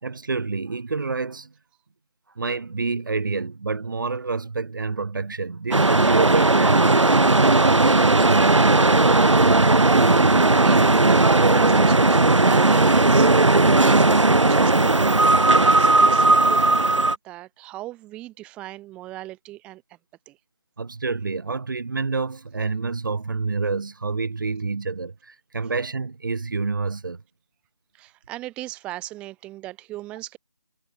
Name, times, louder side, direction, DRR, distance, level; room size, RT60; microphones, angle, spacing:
voice 1, 0.0-1.5 2.4-8.8 20.8-27.2, right 4 dB, 45° right, 1.1 m, -28 dB
sound 1, 5.7-17.2, right 2 dB, 80° right, 0.9 m, -16 dB
voice 2, 9.3-19.8 20.3-20.4 28.0-30.4, right 16 dB, 5° right, 2.8 m, -36 dB
figure-of-eight pair, 160°, 15 cm